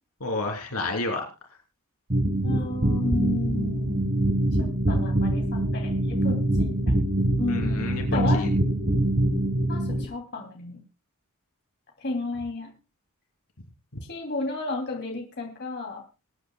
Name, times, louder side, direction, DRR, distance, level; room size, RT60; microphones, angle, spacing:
voice 1, 0.2-1.2 7.5-8.5, left 2 dB, 75° left, 3 dB, 3.3 m, -30 dB
sound 1, 2.1-10.0, right 1 dB, 40° right, 1.5 m, -24 dB
voice 2, 2.4-4.1 4.6-6.9 7.4-8.5 9.7-10.8 12.0-12.7 14.1-16.0, left 3 dB, 50° left, 1 dB, 2.9 m, -33 dB
25.5 x 9.2 x 2.3 m, 0.28 s
head